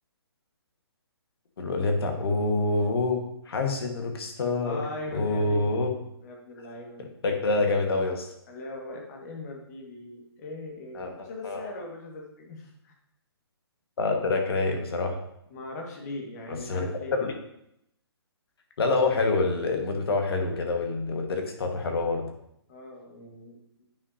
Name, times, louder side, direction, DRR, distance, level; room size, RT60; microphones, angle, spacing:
voice 1, 1.6-4.8 5.1-5.9 7.0-8.3 10.9-11.7 14.0-15.2 16.5-16.8 17.1-17.3 18.8-22.2, left 3 dB, 65° left, 3 dB, 1.6 m, -27 dB
voice 2, 4.6-5.7 6.2-7.0 8.5-12.9 15.5-17.1 22.7-23.6, left 2 dB, 40° left, 0 dB, 1.9 m, -39 dB
9.2 x 5.6 x 2.8 m, 0.77 s
hypercardioid pair, 145°, 14 cm